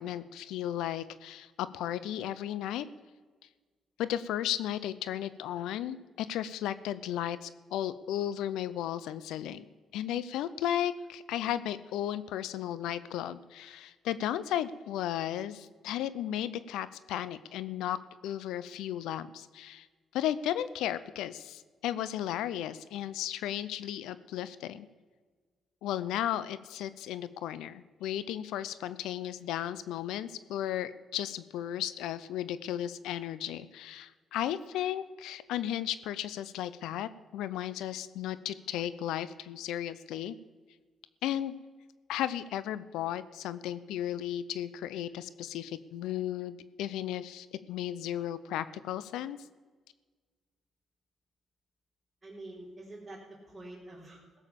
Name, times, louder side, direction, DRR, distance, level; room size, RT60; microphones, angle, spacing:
voice 1, 0.0-2.9 4.0-9.7 9.9-19.9 20.1-24.9 25.8-40.3 41.2-41.6 42.1-49.4, left 11 dB, 90° left, 16 dB, 0.6 m, -35 dB
voice 2, 52.2-54.4, right 2 dB, 20° right, -8 dB, 3.7 m, -47 dB
16.5 x 7.2 x 6.9 m, 1.4 s
cardioid pair, 90°, 0 cm